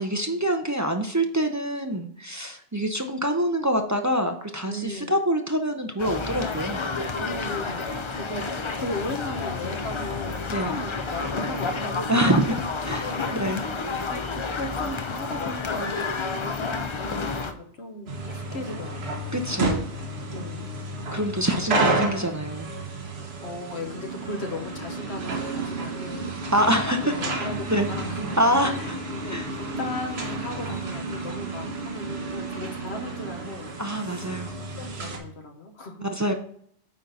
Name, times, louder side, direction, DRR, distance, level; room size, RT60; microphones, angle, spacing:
voice 1, 0.0-6.9 10.5-10.7 12.1-12.5 12.9-13.6 19.3-19.8 21.1-22.7 26.5-27.9 28.4-29.0 29.3-29.5 33.8-34.6 36.1-36.3, right 1 dB, 20° right, 4 dB, 0.5 m, -25 dB
voice 2, 4.6-5.1 7.2-12.2 12.5-13.3 13.9-19.4 20.3-20.8 23.4-26.3 26.8-28.3 28.6-33.7 34.0-36.3, left 2 dB, 70° left, 4 dB, 1.4 m, -37 dB
sound 1, 6.0-17.5, left 4 dB, 35° left, 0.5 m, -30 dB
sound 2, 18.1-35.2, right 2 dB, 65° right, 1.4 m, -31 dB
9.0 x 3.9 x 4.1 m, 0.63 s
omnidirectional pair, 1.2 m